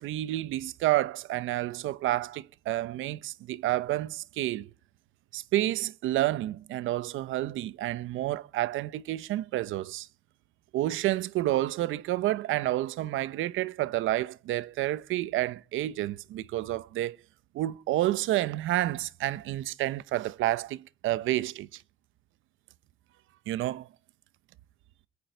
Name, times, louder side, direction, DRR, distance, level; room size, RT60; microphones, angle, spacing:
voice 1, 0.0-4.7 5.3-10.1 10.7-17.2 17.5-21.8 23.5-23.9, right 15 dB, 90° right, 0.8 m, -29 dB
21.5 x 9.6 x 4.5 m
cardioid pair, 90°, 20 cm